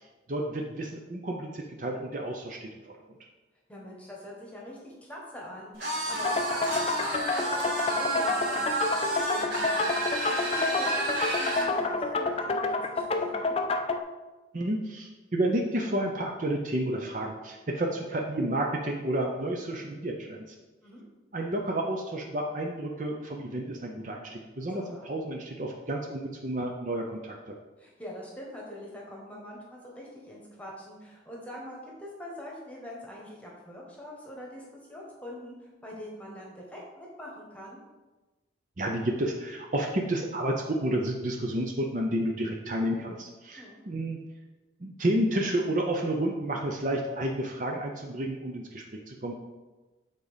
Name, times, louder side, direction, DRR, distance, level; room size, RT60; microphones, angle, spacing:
voice 1, 0.3-2.9 14.5-20.4 21.3-27.3 38.8-44.2 44.8-49.3, right 1 dB, 40° right, 1 dB, 0.6 m, -31 dB
voice 2, 3.7-9.9 10.3-13.6 20.8-21.0 24.7-25.1 27.8-37.8 43.5-43.8, left 1 dB, 5° left, -3 dB, 1.4 m, -43 dB
sound 1, 5.8-11.7, right 1 dB, 60° right, 2.2 m, -30 dB
sound 2, 6.2-14.0, left 3 dB, 30° left, 0.4 m, -29 dB
7.6 x 4.0 x 5.0 m, 1.2 s
head